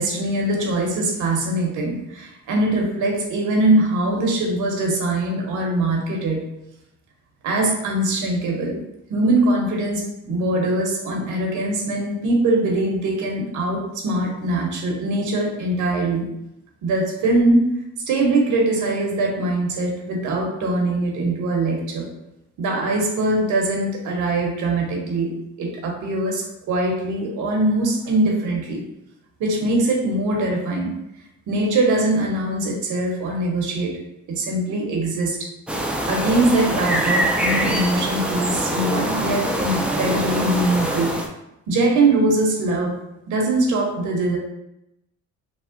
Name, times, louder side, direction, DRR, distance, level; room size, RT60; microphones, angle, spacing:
voice 1, 0.0-6.4 7.4-8.8 9.1-16.3 16.8-17.6 18.1-22.1 22.6-25.3 25.6-28.8 29.4-30.9 31.5-34.0 34.3-35.5 36.0-41.1 41.7-42.9 43.3-44.4, right 2 dB, 80° right, 0 dB, 0.8 m, -22 dB
sound 1, 35.7-41.3, right 1 dB, 5° right, 0.3 m, -24 dB
3.4 x 2.1 x 2.5 m, 0.86 s
cardioid pair, 90°, 30 cm